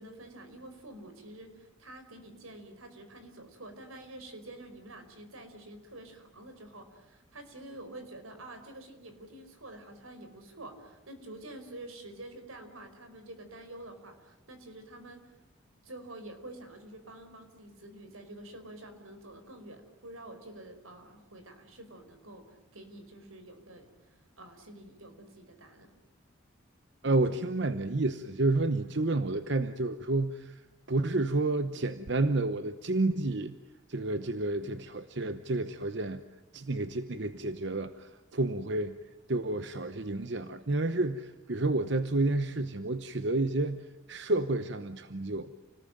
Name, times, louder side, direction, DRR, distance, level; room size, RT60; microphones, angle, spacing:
voice 1, 0.0-15.3 15.8-25.9, right 1 dB, 85° right, 7 dB, 4.9 m, -48 dB
voice 2, 27.0-30.6 30.9-33.5 33.9-36.2 36.5-39.0 39.3-45.5, right 2 dB, 55° right, 10 dB, 0.9 m, -30 dB
29.5 x 19.5 x 9.1 m, 1.0 s
head